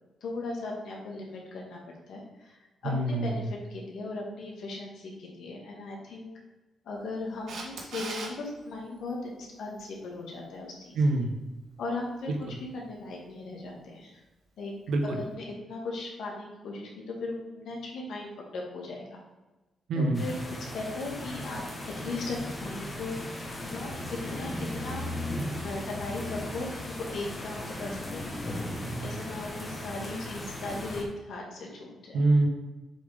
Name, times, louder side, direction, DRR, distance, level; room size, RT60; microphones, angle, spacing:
voice 1, 0.2-1.8 2.1-6.3 6.9-11.0 11.8-12.3 12.7-14.2 14.6-14.7 15.0-19.2 19.9-21.6 22.0-23.2 23.6-24.0 24.2-25.1 25.6-32.2, left 2 dB, 65° left, -1 dB, 1.9 m, -38 dB
voice 2, 2.8-3.3 10.9-11.4 12.3-12.6 14.9-15.0 19.9-20.3 32.1-32.5, right 2 dB, 80° right, 3 dB, 1.2 m, -25 dB
Camera, 7.5-8.3 15.0-15.1, right 3 dB, 55° right, 1.3 m, -37 dB
sound 1, 20.1-31.0, left 1 dB, 15° left, 1.1 m, -37 dB
7.2 x 5.8 x 3.5 m, 1.1 s
wide cardioid pair, 180°, 0 cm